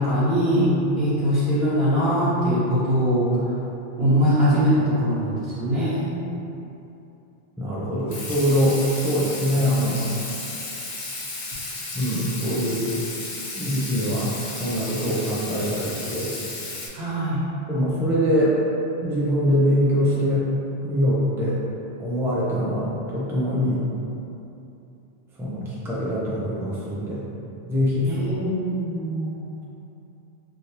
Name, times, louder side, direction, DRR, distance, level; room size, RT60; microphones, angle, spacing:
voice 1, 0.0-3.3 4.0-6.1 16.9-17.4 28.0-29.4, equal, 75° right, -12 dB, 1.5 m, -22 dB
voice 2, 7.6-10.1 11.9-12.9 13.5-16.3 17.7-18.5 19.0-20.5 20.8-21.6 22.0-23.9 25.4-27.2 27.7-28.3, equal, 5° right, -7 dB, 0.3 m, -23 dB
Water tap faucet / Sink (filling or washing), 8.1-16.9, left 2 dB, 50° left, 0.6 m, -34 dB
3.4 x 2.6 x 2.9 m, 2.8 s
omnidirectional pair, 1.1 m